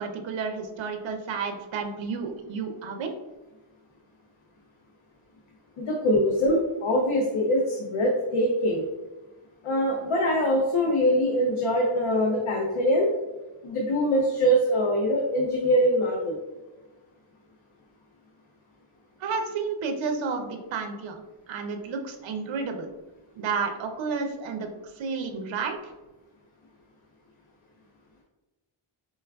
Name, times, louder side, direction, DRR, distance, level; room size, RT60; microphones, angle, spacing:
voice 1, 0.0-3.1 19.2-22.9 23.4-24.7 24.9-25.8, right 5 dB, 70° right, 4 dB, 0.5 m, -31 dB
voice 2, 5.8-8.9 9.6-13.1 13.6-16.4, equal, 80° left, 0 dB, 0.6 m, -23 dB
4.4 x 2.3 x 2.2 m, 1.1 s
wide cardioid pair, 165°, 49 cm